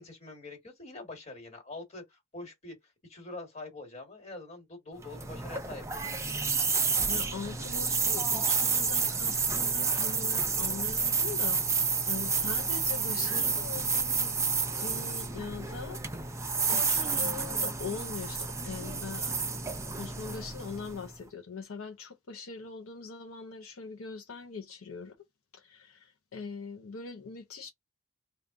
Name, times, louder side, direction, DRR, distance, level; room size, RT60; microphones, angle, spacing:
voice 1, 0.0-2.8 3.1-6.2, left 2 dB, 30° left, 1.6 m, -45 dB
sound 1, 5.0-21.2, right 5 dB, 15° right, 0.5 m, -30 dB
voice 2, 7.1-14.4 14.8-16.0 16.7-19.5 20.0-25.1 25.5-27.7, left 5 dB, 70° left, 0.6 m, -42 dB
3.5 x 2.3 x 3.6 m
head